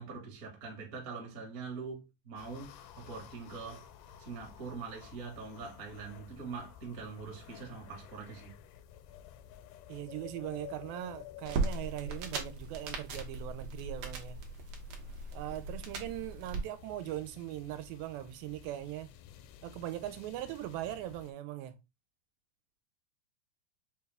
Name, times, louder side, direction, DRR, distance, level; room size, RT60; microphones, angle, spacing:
voice 1, 0.0-3.9 4.2-8.5, right 5 dB, 45° right, 1.0 m, -43 dB
sound 1, 2.4-21.3, left 10 dB, 85° left, 1.8 m, -53 dB
voice 2, 9.9-14.4 15.3-19.1 19.6-21.8, right 13 dB, 85° right, 2.3 m, -40 dB
sound 2, 11.4-16.6, right 3 dB, 65° right, 1.6 m, -38 dB
6.6 x 2.3 x 3.3 m
omnidirectional pair, 4.0 m